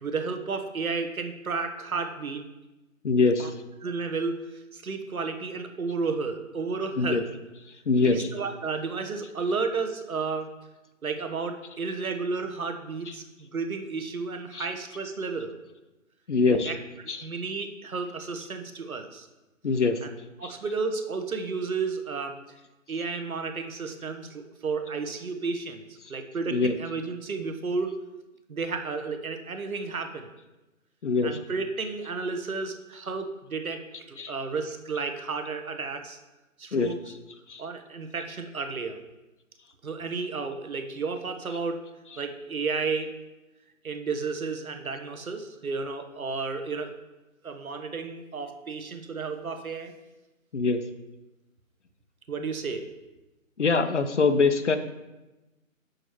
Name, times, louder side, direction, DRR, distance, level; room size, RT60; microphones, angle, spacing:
voice 1, 0.0-2.5 3.4-3.5 3.8-4.4 4.7-7.2 8.0-10.5 11.0-15.6 16.5-16.7 17.2-19.3 20.4-22.4 22.9-25.8 26.1-28.0 28.5-30.3 31.2-33.8 34.1-36.2 36.6-37.1 37.6-39.0 39.8-41.9 42.2-43.1 43.8-46.9 47.4-49.9 52.3-52.9, right 4 dB, 85° right, 6 dB, 1.1 m, -32 dB
voice 2, 3.0-3.5 7.0-7.2 7.9-8.3 14.5-14.7 16.3-16.7 17.1-17.3 19.6-20.0 20.4-20.5 26.5-26.7 31.0-31.3 34.2-34.3 36.7-36.9 37.5-37.6 50.5-50.8 53.6-54.8, left 4 dB, 60° left, 9 dB, 0.7 m, -23 dB
6.4 x 4.9 x 4.5 m, 1.0 s
hypercardioid pair, 175°, 41 cm